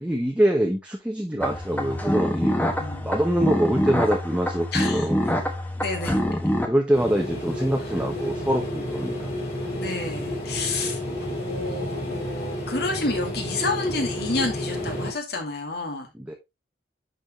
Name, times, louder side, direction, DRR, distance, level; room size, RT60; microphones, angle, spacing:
voice 1, 0.0-2.5 3.0-5.2 6.4-9.4 16.1-16.3, right 1 dB, 5° right, 0.9 m, -24 dB
sound 1, 1.4-6.7, equal, 10° left, 1.2 m, -25 dB
voice 2, 2.7-3.1 4.7-5.1 5.8-6.2 9.7-11.0 11.3-16.1, left 3 dB, 60° left, 2.2 m, -29 dB
sound 2, 6.9-15.1, left 1 dB, 35° left, 3.4 m, -31 dB
10.5 x 4.3 x 3.1 m
head